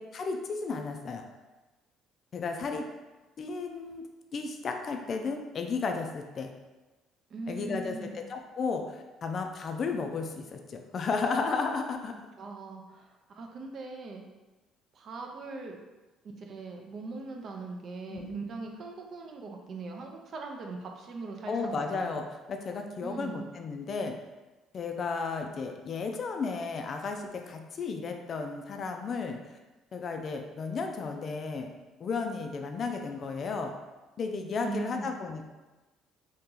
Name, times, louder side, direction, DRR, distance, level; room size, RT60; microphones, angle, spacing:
voice 1, 0.1-1.2 2.3-2.8 3.4-4.0 4.3-6.5 7.5-12.1 18.1-18.4 21.5-22.2 22.5-24.1 24.7-29.4 29.9-31.7 32.0-33.7 34.2-35.5, left 4 dB, 40° left, 4 dB, 0.4 m, -33 dB
voice 2, 7.3-8.2 12.4-14.2 14.9-15.8 16.4-22.2 23.0-23.5 34.6-35.1, right 3 dB, 45° right, 2 dB, 0.5 m, -40 dB
2.9 x 2.8 x 3.7 m, 1.1 s
cardioid pair, 135°, 0 cm